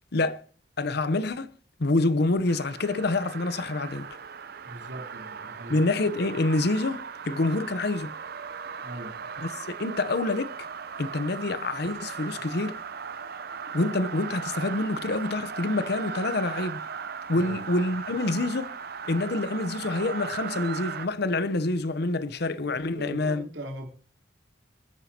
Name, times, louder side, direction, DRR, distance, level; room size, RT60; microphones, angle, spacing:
voice 1, 0.1-0.4 0.8-1.5 1.8-4.1 5.7-8.1 9.4-10.5 11.0-12.8 13.7-16.8 17.3-18.7 19.0-23.5, left 2 dB, 60° left, 0.8 m, -27 dB
sound 1, 2.5-21.1, right 6 dB, 55° right, 0.7 m, -38 dB
voice 2, 4.6-5.8 8.8-9.2 17.3-17.6 22.8-23.9, right 1 dB, 80° right, 3.5 m, -40 dB
27.5 x 9.5 x 2.9 m
head